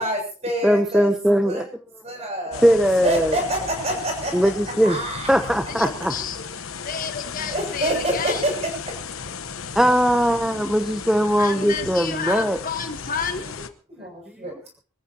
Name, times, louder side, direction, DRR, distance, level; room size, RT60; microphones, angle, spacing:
voice 1, 0.0-1.1 1.4-1.6 2.0-2.7 3.0-4.5 4.8-5.3 5.8-5.9 7.5-8.5 10.5-10.9 13.9-14.5, right 1 dB, 30° right, 2 dB, 7.1 m, -27 dB
voice 2, 0.6-1.6 2.6-3.4 4.3-5.0 5.3-6.1 9.7-12.6, equal, 5° right, 8 dB, 0.7 m, -19 dB
sound 1, 2.5-13.7, left 5 dB, 80° left, 1.1 m, -35 dB
voice 3, 5.7-6.5 6.8-8.5 11.4-13.6, left 6 dB, 40° left, 7 dB, 1.3 m, -30 dB
26.0 x 14.5 x 2.9 m, 0.36 s
head